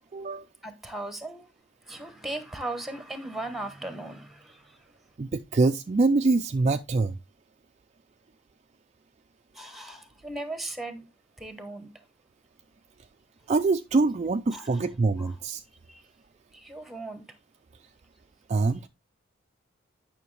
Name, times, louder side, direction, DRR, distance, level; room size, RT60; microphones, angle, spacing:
voice 1, 0.1-0.4 5.2-7.1 13.5-15.6 18.5-18.9, right 3 dB, 30° right, 0.3 m, -24 dB
voice 2, 0.6-1.5 1.9-4.9 9.5-11.1 11.4-11.9 14.5-14.8 15.2-15.3 15.9-16.0 16.5-17.3 18.5-18.7, right 2 dB, ahead, 1.0 m, -38 dB
9.5 x 5.7 x 3.2 m
head